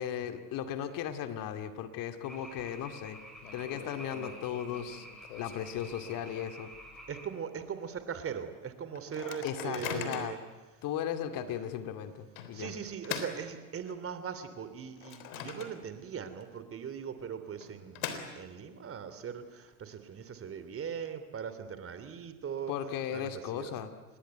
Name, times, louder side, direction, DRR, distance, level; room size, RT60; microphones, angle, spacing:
voice 1, 0.0-3.2 3.5-5.1 5.4-6.7 9.4-10.3 10.8-12.7 22.7-23.9, left 9 dB, 50° left, 8 dB, 2.4 m, -36 dB
Microwave oven, 2.2-2.7 3.0-3.1 3.4-6.5 6.9-7.0 7.3-7.6 8.1-8.2 8.9-10.5 11.1-11.2 12.4-14.2 14.6-16.1 16.4-16.5 17.4-18.8, left 8 dB, 70° left, 3.6 m, -42 dB
sound 1, 2.2-7.3, equal, ahead, 7.5 m, -49 dB
voice 2, 7.1-10.4 12.5-18.0 18.4-22.7 23.1-23.7, right 7 dB, 30° right, 10 dB, 3.2 m, -40 dB
27.0 x 21.0 x 9.3 m, 1.2 s
hypercardioid pair, 85°, 44 cm